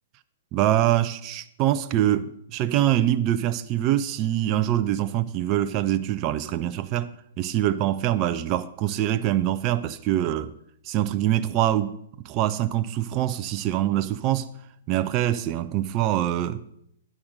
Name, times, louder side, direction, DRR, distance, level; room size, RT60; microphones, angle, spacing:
voice 1, 0.5-7.1 7.4-10.5 10.9-12.0 12.2-14.5 14.9-16.6, right 12 dB, 30° right, 0.5 m, -24 dB
10.0 x 5.8 x 6.4 m
figure-of-eight pair, 110°, 0 cm